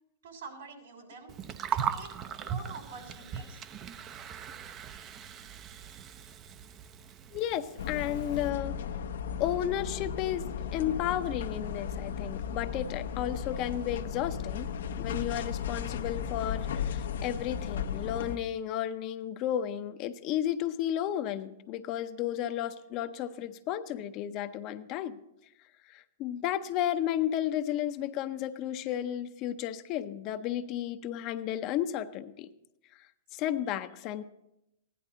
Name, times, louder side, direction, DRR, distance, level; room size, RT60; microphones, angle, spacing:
voice 1, 0.2-1.3 1.7-2.1 2.4-3.6, right 4 dB, 80° right, 1 dB, 3.3 m, -46 dB
Gurgling, 1.3-8.5, right 8 dB, 30° right, 0.6 m, -39 dB
voice 2, 7.3-8.8 9.4-10.4 10.7-14.7 15.0-25.2 25.9-32.5 33.3-34.2, left 11 dB, 40° left, 10 dB, 0.6 m, -33 dB
sound 1, 7.8-18.4, left 7 dB, 80° left, 0.8 m, -35 dB
15.5 x 11.0 x 3.9 m, 0.85 s
hypercardioid pair, 135°, 0 cm